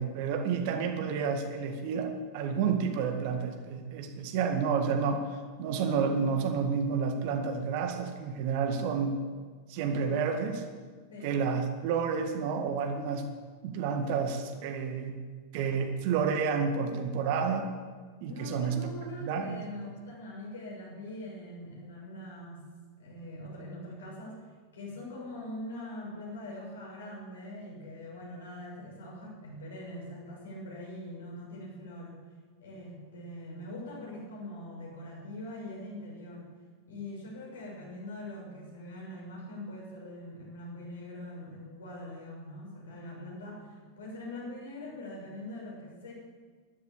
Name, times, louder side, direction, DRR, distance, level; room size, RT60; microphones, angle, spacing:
voice 1, 0.0-5.3 5.6-9.2 9.7-10.6 11.2-13.2 13.6-15.2 15.5-17.7 18.2-18.8 19.2-19.6, right 6 dB, 45° right, 5 dB, 1.9 m, -30 dB
voice 2, 18.3-22.6 23.0-24.4 24.7-32.2 32.6-36.5 36.9-46.1, left 1 dB, 65° left, -2 dB, 6.4 m, -43 dB
12.5 x 12.0 x 8.4 m, 1.5 s
figure-of-eight pair, 90°, 0 cm